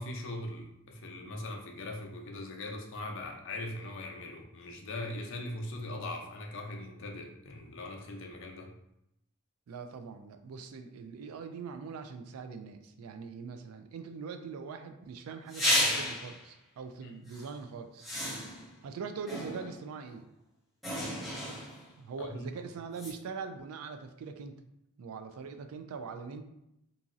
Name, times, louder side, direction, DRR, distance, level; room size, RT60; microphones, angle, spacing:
voice 1, 0.0-8.7 17.0-17.2 22.2-22.4, left 2 dB, 60° left, 2 dB, 0.5 m, -40 dB
voice 2, 9.7-18.1 18.8-20.3 22.0-24.6 25.0-26.4, right 5 dB, 90° right, 8 dB, 0.3 m, -42 dB
sound 1, 15.5-16.4 17.3-17.5 18.0-18.7 19.3-19.9 20.8-21.9 23.0-23.1, left 1 dB, ahead, 0.5 m, -32 dB
2.9 x 2.6 x 2.4 m, 0.81 s
head